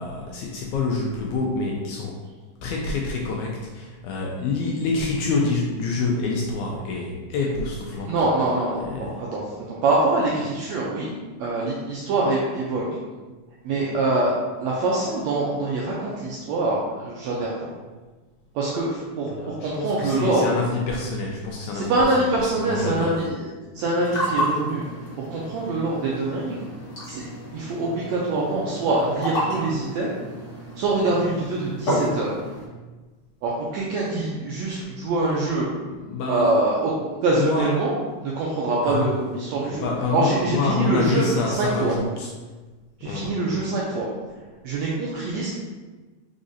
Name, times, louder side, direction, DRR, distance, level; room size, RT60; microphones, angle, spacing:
voice 1, 0.0-2.2 2.6-8.1 8.8-9.2 13.7-14.1 19.3-22.3 22.6-23.2 36.0-36.7 37.4-37.7 38.8-39.1 39.7-42.3 43.0-43.3, left 3 dB, 80° left, -1 dB, 1.8 m, -27 dB
voice 2, 8.1-9.4 9.7-11.1 11.4-12.9 13.6-14.3 14.6-17.7 18.5-20.4 21.7-23.4 23.7-24.8 25.3-26.6 27.1-30.1 30.8-32.3 33.4-35.7 36.3-36.9 37.2-41.3 41.6-41.9 43.0-44.1 44.6-45.5, right 2 dB, 80° right, -5 dB, 1.6 m, -24 dB
sound 1, 23.8-32.6, equal, 55° left, 1.1 m, -31 dB
5.0 x 3.8 x 2.6 m, 1.3 s
omnidirectional pair, 3.7 m